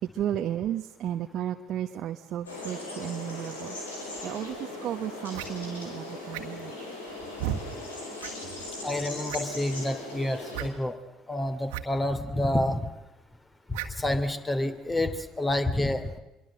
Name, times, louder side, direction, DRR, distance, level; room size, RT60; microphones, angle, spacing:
voice 1, 0.0-3.8 4.2-6.9, right 11 dB, 55° right, 5 dB, 1.1 m, -33 dB
sound 1, 2.5-10.7, left 2 dB, 85° left, 4.9 m, -39 dB
sound 2, 4.5-4.6 5.3-5.5 6.3-6.7 7.4-7.6 8.2-8.3 8.6-8.7 9.3-9.6 10.5-10.7 11.7-11.8 12.1-12.2 13.7-14.0, right 12 dB, 70° right, 1.8 m, -34 dB
voice 2, 8.8-11.0 11.3-12.9 13.7-16.2, left 1 dB, 20° left, 9 dB, 2.9 m, -28 dB
25.5 x 23.0 x 7.7 m, 0.96 s
figure-of-eight pair, 55°, 0 cm